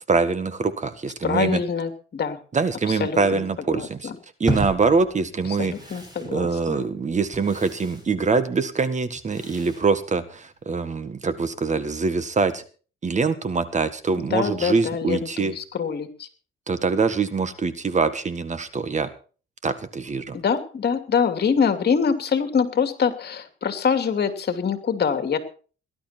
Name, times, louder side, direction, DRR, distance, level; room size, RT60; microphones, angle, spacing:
voice 1, 0.1-1.6 2.5-4.1 4.4-5.7 6.2-12.6 13.0-15.5 16.7-19.1 19.6-20.4, right 4 dB, 35° right, 12 dB, 1.7 m, -24 dB
voice 2, 1.2-2.4 3.0-3.4 3.7-4.1 5.6-6.8 14.3-16.3 20.3-25.4, left 6 dB, 50° left, 8 dB, 2.8 m, -24 dB
sound 1, 4.5-10.7, right 1 dB, 20° right, 6.7 m, -35 dB
19.0 x 11.5 x 4.5 m, 0.38 s
cardioid pair, 105°, 21 cm